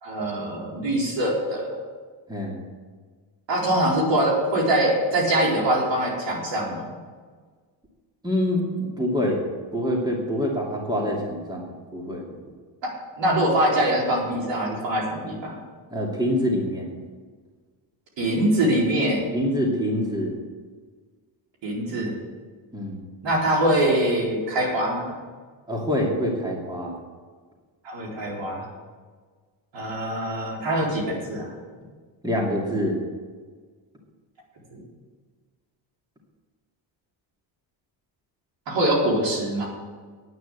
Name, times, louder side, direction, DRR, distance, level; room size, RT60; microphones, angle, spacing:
voice 1, 0.0-1.8 3.5-6.9 12.8-12.9 13.2-15.5 18.2-19.3 21.6-22.2 23.2-25.1 27.8-28.6 29.7-31.5 34.7-34.8 38.7-39.7, right 1 dB, 70° right, -2 dB, 4.3 m, -23 dB
voice 2, 2.3-2.6 8.2-9.4 9.7-11.6 11.9-12.2 15.9-16.9 19.3-20.3 22.7-23.0 25.7-27.0 32.2-33.0, equal, 10° right, -2 dB, 2.6 m, -25 dB
9.6 x 9.4 x 8.2 m, 1.5 s
cardioid pair, 110°, 45 cm